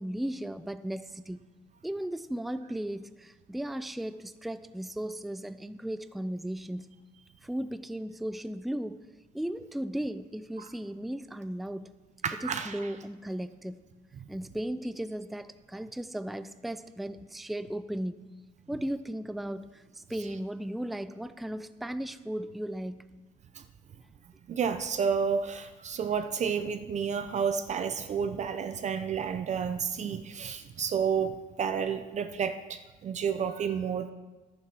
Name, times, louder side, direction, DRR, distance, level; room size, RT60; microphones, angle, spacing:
voice 1, 0.0-1.5 1.8-6.9 7.4-9.1 9.3-11.9 12.4-13.8 14.3-18.3 18.7-23.1, right 1 dB, ahead, 0.4 m, -36 dB
voice 2, 12.2-12.9 14.2-14.3 23.5-23.6 24.5-34.1, right 6 dB, 45° right, 0.7 m, -31 dB
11.0 x 9.6 x 6.1 m
cardioid pair, 110°, 17 cm